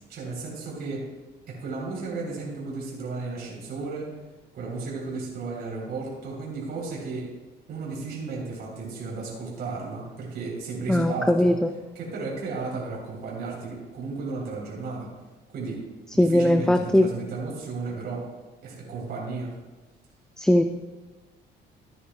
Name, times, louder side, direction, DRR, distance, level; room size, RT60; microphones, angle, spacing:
voice 1, 0.1-1.1 1.5-4.1 4.5-7.3 7.7-11.5 12.0-15.3 15.5-15.9 16.1-18.3 18.6-19.5, right 3 dB, 60° right, -4 dB, 3.5 m, -34 dB
voice 2, 10.9-11.7 16.2-17.1 20.4-20.6, left 1 dB, 5° left, 6 dB, 0.4 m, -20 dB
15.0 x 9.5 x 2.3 m, 1.2 s
cardioid pair, 100°, 19 cm